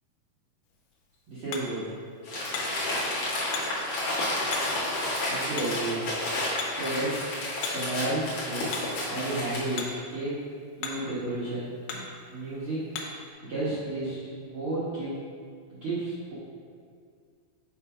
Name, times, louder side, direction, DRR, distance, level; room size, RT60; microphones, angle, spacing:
Hammer, 0.6-13.3, left 5 dB, 80° left, 2.9 m, -42 dB
voice 1, 1.3-1.9 5.3-6.0 6.7-7.4 7.7-8.6 9.1-10.4 10.8-12.0 12.3-12.8 13.5-15.3 15.7-16.3, right 2 dB, 80° right, -11 dB, 1.2 m, -32 dB
Crumpling crinkling, 2.2-9.8, left 1 dB, 50° left, 2.2 m, -31 dB
8.5 x 3.4 x 5.0 m, 2.1 s
omnidirectional pair, 4.6 m